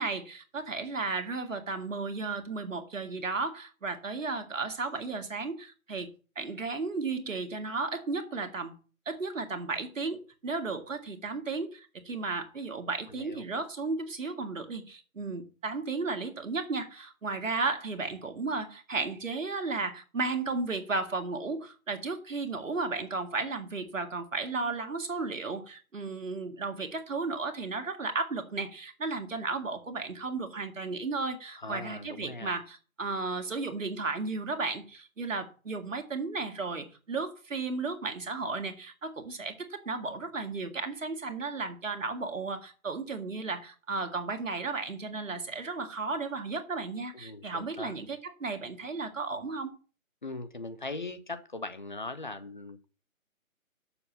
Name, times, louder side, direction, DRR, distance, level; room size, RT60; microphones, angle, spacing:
voice 1, 0.0-6.1 6.4-8.7 9.1-49.7, right 3 dB, 65° right, 2.0 m, -34 dB
voice 2, 13.1-13.4 31.5-32.5 47.1-47.9 50.2-52.9, left 3 dB, 35° left, 0.8 m, -40 dB
7.0 x 5.9 x 7.1 m
figure-of-eight pair, 170°, 42 cm